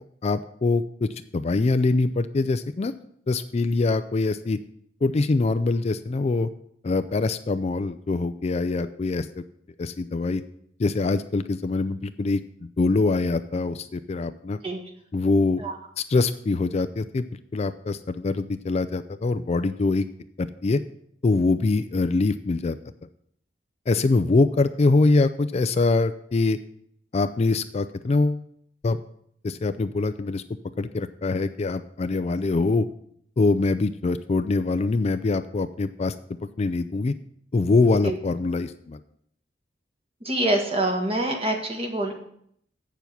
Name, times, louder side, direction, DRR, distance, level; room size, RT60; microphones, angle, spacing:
voice 1, 0.2-2.9 3.3-4.6 5.0-6.5 6.8-9.3 9.8-10.4 10.8-14.6 15.1-15.6 16.0-17.3 17.5-20.1 20.4-20.8 21.2-22.8 23.9-26.6 27.1-28.4 28.8-29.0 29.4-30.4 30.8-32.9 33.4-36.1 36.6-37.1 37.5-39.0, left 3 dB, 35° left, 11 dB, 0.4 m, -23 dB
voice 2, 40.2-42.1, right 1 dB, 30° right, 2 dB, 1.6 m, -25 dB
8.2 x 7.0 x 5.9 m, 0.68 s
head